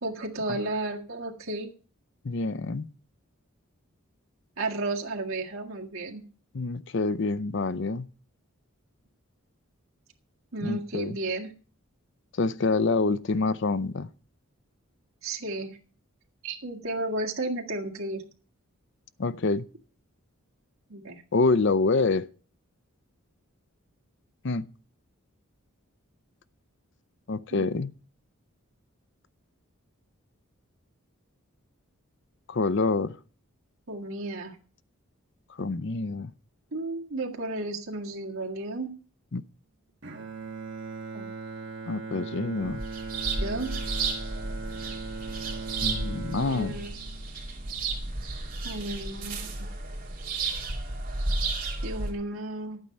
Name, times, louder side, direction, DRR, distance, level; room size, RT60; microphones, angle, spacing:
voice 1, 0.0-1.7 4.6-6.2 10.5-11.5 15.2-15.8 16.4-18.2 20.9-21.2 27.5-27.7 33.9-34.6 36.7-38.9 41.1-41.3 43.4-43.7 46.4-46.9 48.6-49.7 51.8-52.8, right 2 dB, 70° right, 1.9 m, -33 dB
voice 2, 2.2-2.9 6.5-8.1 10.6-11.2 12.3-14.1 19.2-19.7 21.3-22.3 24.4-24.7 27.3-27.9 32.5-33.2 35.6-36.3 39.3-39.4 41.9-42.8 45.8-46.8, left 3 dB, 55° left, 0.6 m, -26 dB
Bowed string instrument, 40.0-48.2, right 4 dB, 55° right, 1.6 m, -39 dB
sound 1, 42.6-52.1, right 3 dB, 40° right, 2.4 m, -33 dB
11.5 x 8.9 x 5.4 m
head